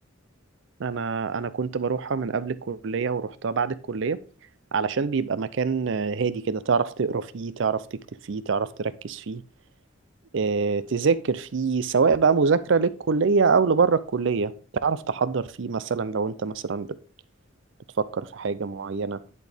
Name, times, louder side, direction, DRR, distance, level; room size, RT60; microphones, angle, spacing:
voice 1, 0.8-4.2 4.7-8.0 8.3-9.4 10.3-14.5 14.8-16.9 18.0-19.2, right 5 dB, 70° right, 0.5 m, -25 dB
10.5 x 4.4 x 3.4 m
head